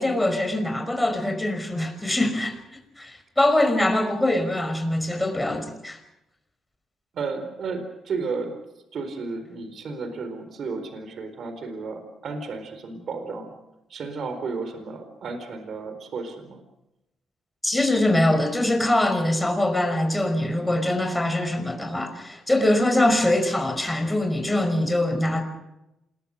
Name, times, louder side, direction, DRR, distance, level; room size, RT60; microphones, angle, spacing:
voice 1, 0.0-2.6 3.0-6.0 17.6-25.4, left 1 dB, 10° left, 5 dB, 5.5 m, -23 dB
voice 2, 7.1-8.6 8.9-13.5 13.9-16.6, right 4 dB, 60° right, 8 dB, 4.4 m, -33 dB
28.0 x 21.5 x 6.6 m, 0.91 s
cardioid pair, 90°, 0 cm